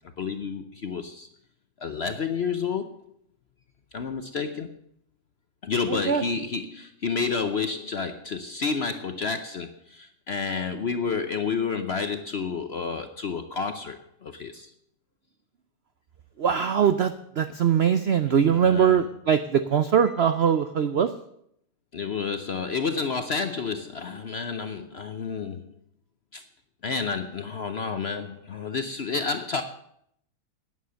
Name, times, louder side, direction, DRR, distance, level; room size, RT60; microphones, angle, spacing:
voice 1, 0.2-1.3 1.8-2.9 3.9-4.8 5.6-14.7 18.3-19.0 20.0-20.1 21.9-25.7 26.3-26.4 26.8-29.6, left 5 dB, 55° left, 9 dB, 0.7 m, -30 dB
voice 2, 5.9-6.2 16.4-21.1, right 8 dB, 70° right, 10 dB, 0.6 m, -22 dB
11.5 x 9.5 x 6.9 m, 0.72 s
omnidirectional pair, 1.8 m